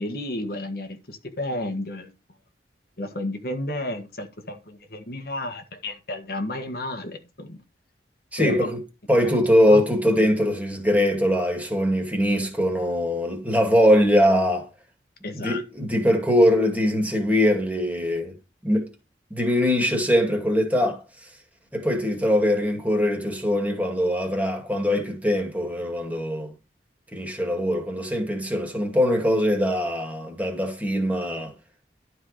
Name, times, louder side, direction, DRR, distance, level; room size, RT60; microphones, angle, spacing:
voice 1, 0.0-2.1 3.0-7.6 8.4-8.7 9.2-9.4 9.7-9.8 15.2-15.6, left 1 dB, 60° left, 1.5 m, -32 dB
voice 2, 8.3-8.8 9.1-14.7 15.3-18.3 18.6-18.9 19.3-21.0 21.7-26.5 27.1-31.5, equal, 10° right, 2.1 m, -22 dB
12.0 x 4.7 x 5.0 m
head